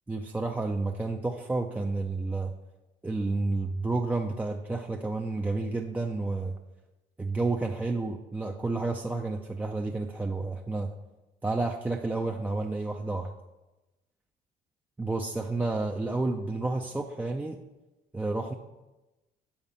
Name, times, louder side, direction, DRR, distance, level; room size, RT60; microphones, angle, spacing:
voice 1, 0.1-2.5 3.0-6.5 7.2-10.9 11.4-13.3 15.0-17.6 18.1-18.5, right 3 dB, 10° right, 1 dB, 0.4 m, -30 dB
7.2 x 4.1 x 5.2 m, 1.0 s
cardioid pair, 110°, 17 cm